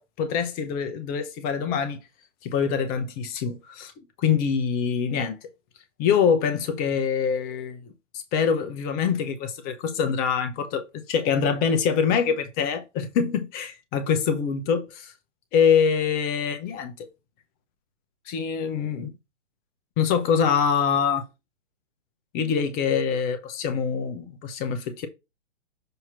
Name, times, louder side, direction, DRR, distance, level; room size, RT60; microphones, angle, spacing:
voice 1, 0.0-2.0 2.4-3.9 4.2-5.5 6.0-7.8 8.3-15.1 15.5-17.1 18.3-19.1 20.0-21.3 22.3-25.1, left 7 dB, 25° left, 0.8 m, -24 dB
6.5 x 2.9 x 5.6 m
figure-of-eight pair, 125°, 37 cm